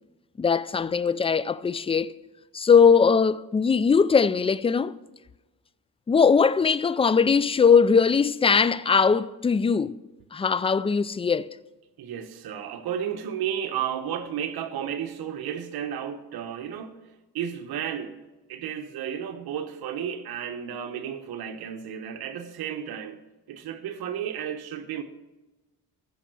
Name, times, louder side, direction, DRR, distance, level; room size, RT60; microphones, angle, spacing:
voice 1, 0.4-2.1 2.5-4.9 6.1-9.9 10.3-11.5, left 5 dB, 15° left, 0.3 m, -20 dB
voice 2, 12.0-17.0 17.3-18.2 18.5-23.2 23.5-25.0, right 9 dB, 75° right, 1.1 m, -33 dB
15.0 x 5.5 x 6.2 m
cardioid pair, 90°, 38 cm